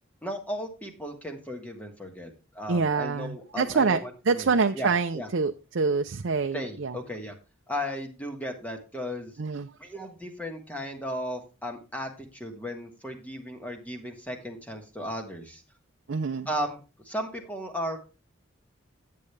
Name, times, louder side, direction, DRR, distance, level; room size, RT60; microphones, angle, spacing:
voice 1, 0.2-4.5 4.7-5.3 6.5-7.3 7.7-9.3 9.8-15.6 16.5-16.8 17.0-18.0, equal, 5° left, 3 dB, 1.4 m, -35 dB
voice 2, 2.7-4.0 4.3-7.0 9.4-9.7 16.1-16.5, right 4 dB, 70° right, 6 dB, 0.6 m, -26 dB
9.6 x 8.5 x 3.3 m, 0.31 s
head